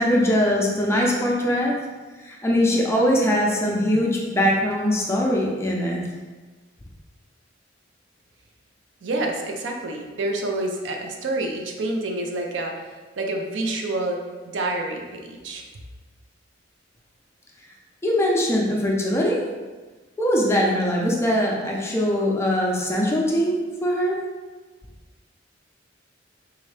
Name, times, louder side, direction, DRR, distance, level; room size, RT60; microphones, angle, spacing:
voice 1, 0.0-1.8 2.2-6.0 18.0-19.4 20.2-24.2, equal, 15° left, -2 dB, 0.5 m, -21 dB
voice 2, 9.0-14.2 14.4-15.6, right 2 dB, 65° right, 2 dB, 0.5 m, -28 dB
3.7 x 2.7 x 3.2 m, 1.3 s
head